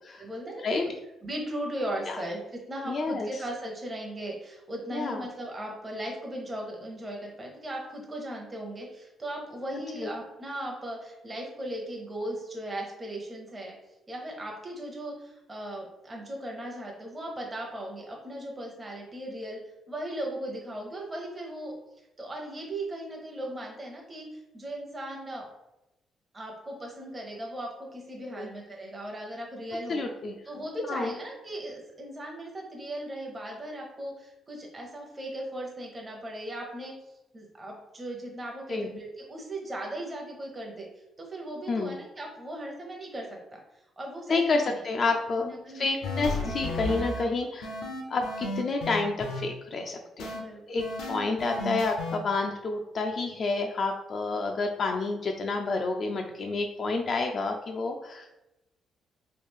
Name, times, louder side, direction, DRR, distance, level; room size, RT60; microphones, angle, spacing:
voice 1, 0.2-0.8 1.2-13.8 14.1-19.6 19.9-21.7 22.2-25.5 26.3-30.0 30.5-36.9 37.3-40.9 41.2-43.3 43.5-43.6 44.0-44.7 45.4-45.9 46.9-47.1 50.3-50.9, right 1 dB, 25° right, -1 dB, 0.8 m, -37 dB
voice 2, 2.9-3.3 4.9-5.2 9.7-10.1 28.3-28.5 29.9-30.3 30.9-31.1 38.7-38.9 41.7-42.0 44.3-47.7 48.1-50.3 50.7-58.3, left 3 dB, 50° left, 2 dB, 0.3 m, -29 dB
sound 1, 46.0-47.2 47.6-49.4 50.2-50.4 50.8-52.2, left 1 dB, 85° left, 0.7 m, -33 dB
3.2 x 2.3 x 3.5 m, 0.96 s
cardioid pair, 90°, 0 cm